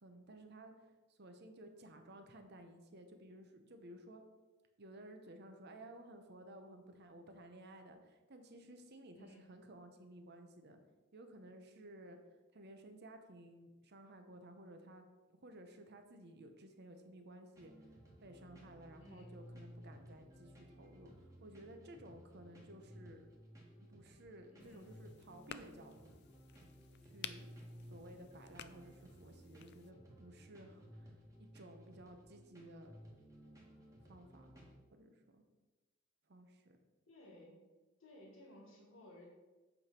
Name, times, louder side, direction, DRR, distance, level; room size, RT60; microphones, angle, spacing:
voice 1, 0.0-4.2 4.8-10.8 11.1-12.2 12.5-17.7 18.2-23.3 23.8-26.2 27.0-27.5 27.9-31.1 31.4-33.0 34.1-35.4 36.3-36.8, right 1 dB, 55° right, 6 dB, 0.8 m, -56 dB
voice 2, 9.1-9.5 19.0-19.3 24.5-24.9 37.1-37.6 38.0-39.3, left 1 dB, 70° left, -2 dB, 1.9 m, -58 dB
sound 1, 17.6-34.8, equal, 15° right, 1.6 m, -57 dB
sound 2, 24.6-29.9, left 10 dB, 55° left, 0.4 m, -54 dB
8.2 x 3.4 x 6.0 m, 1.2 s
head